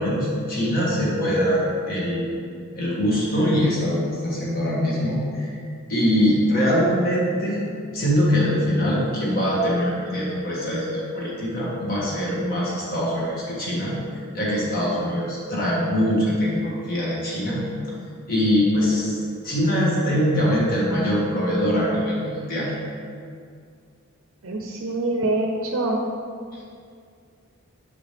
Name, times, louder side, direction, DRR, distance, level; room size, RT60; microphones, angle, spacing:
voice 1, 0.0-2.3 2.7-5.5 5.9-7.6 7.9-13.9 14.3-17.6 18.3-22.7, equal, 45° left, -5 dB, 1.6 m, -23 dB
voice 2, 24.4-26.0, right 2 dB, 65° right, 1 dB, 0.6 m, -25 dB
7.0 x 4.9 x 3.4 m, 2.2 s
head